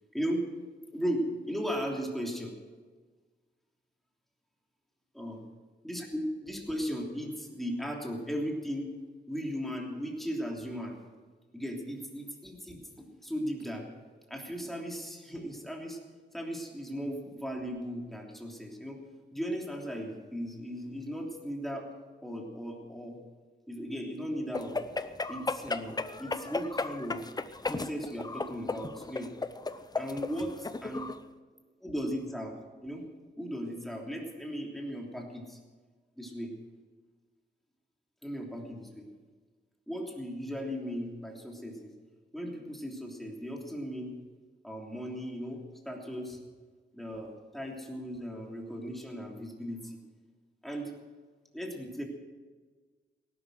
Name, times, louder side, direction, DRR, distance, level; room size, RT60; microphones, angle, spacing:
voice 1, 0.1-0.5 0.9-2.5 5.1-5.4 5.8-8.9 9.3-11.0 11.5-13.9 14.3-16.0 16.3-19.0 19.3-21.9 22.2-23.2 23.7-24.8 25.3-27.2 27.6-29.3 29.9-31.1 31.8-32.6 32.8-33.1 33.4-35.6 36.2-36.6 38.2-39.1 39.9-41.9 42.3-44.1 44.6-46.4 46.9-50.0 50.6-50.9 51.5-52.0, equal, ahead, 0 dB, 3.2 m, -37 dB
sound 1, 24.5-31.2, left 3 dB, 20° left, 0.7 m, -35 dB
18.0 x 12.0 x 6.3 m, 1.4 s
wide cardioid pair, 120°, 20 cm